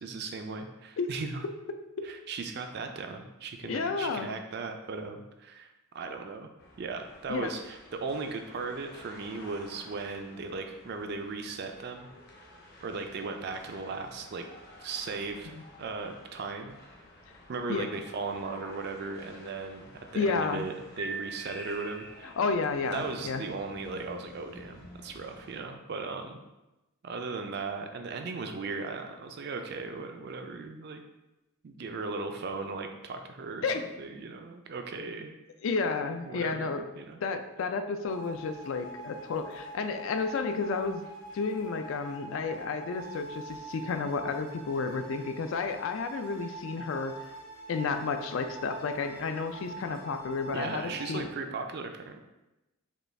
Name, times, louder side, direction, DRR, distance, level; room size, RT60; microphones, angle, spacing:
voice 1, 0.0-1.4 2.0-6.5 6.8-12.1 12.8-14.4 14.8-16.8 17.5-22.3 22.8-26.4 27.0-31.0 31.6-33.7 34.0-35.4 36.3-37.2 50.5-52.2, right 4 dB, 45° right, 5 dB, 0.3 m, -37 dB
voice 2, 3.7-4.3 7.3-7.5 17.7-17.9 20.2-20.7 22.2-23.4 33.6-33.8 35.6-36.8 37.2-41.0 41.3-47.1 47.7-51.3, left 4 dB, 60° left, 7 dB, 0.3 m, -31 dB
sound 1, 6.6-25.6, left 1 dB, 45° left, 0.7 m, -51 dB
sound 2, 21.0-22.5, right 4 dB, 90° right, 0.7 m, -41 dB
sound 3, 38.0-51.2, right 2 dB, 85° left, 1.4 m, -45 dB
5.1 x 2.3 x 3.2 m, 0.99 s
head